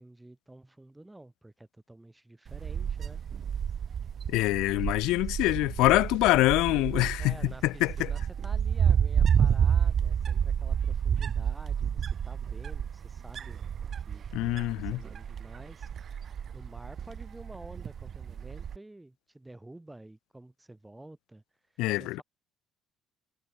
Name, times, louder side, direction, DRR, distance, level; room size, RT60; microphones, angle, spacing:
voice 1, 0.0-3.2 5.9-6.4 6.7-13.6 14.1-15.9 16.5-21.4 21.7-22.2, right 1 dB, 10° right, 6.9 m, -50 dB
Wind, 2.5-18.8, right 8 dB, 50° right, 0.5 m, -30 dB
voice 2, 4.3-7.3 7.6-8.1 14.3-15.0 21.8-22.2, left 19 dB, 85° left, 0.5 m, -25 dB
cardioid pair, 90°, 0 cm